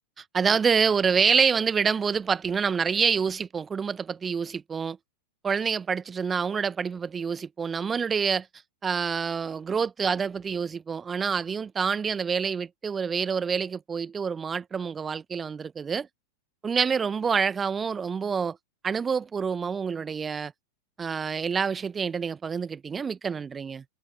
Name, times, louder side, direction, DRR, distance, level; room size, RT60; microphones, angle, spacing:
voice 1, 0.2-5.0 5.4-8.5 8.8-16.1 16.6-18.6 18.8-20.5 21.0-23.8, right 6 dB, 20° right, 1.4 m, -27 dB
figure-of-eight pair, 90°, 0 cm